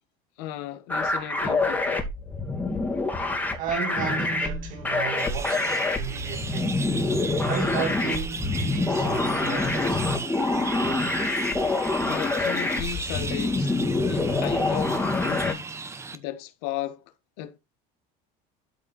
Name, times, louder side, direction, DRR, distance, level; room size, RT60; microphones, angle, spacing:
voice 1, 0.4-2.0 11.7-13.7 14.0-17.0 17.4-17.6, left 13 dB, 80° left, 1.6 m, -36 dB
sound 1, 0.9-15.5, left 2 dB, 10° left, 2.6 m, -26 dB
voice 2, 3.6-6.8 7.4-10.0, right 6 dB, 45° right, 6.0 m, -33 dB
sound 2, 5.2-16.2, right 4 dB, 15° right, 1.1 m, -36 dB
13.0 x 5.6 x 4.2 m
cardioid pair, 155°, 19 cm